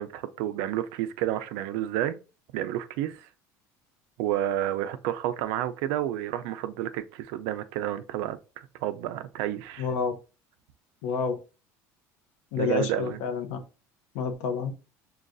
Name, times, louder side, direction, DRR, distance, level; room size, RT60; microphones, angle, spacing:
voice 1, 0.0-2.2 2.5-3.3 4.2-9.9 12.6-13.2, right 12 dB, 75° right, 0.4 m, -30 dB
voice 2, 9.8-10.1 11.0-11.4 12.5-13.6 14.1-14.7, left 5 dB, 85° left, 0.8 m, -28 dB
6.2 x 2.3 x 2.5 m
cardioid pair, 165°, 7 cm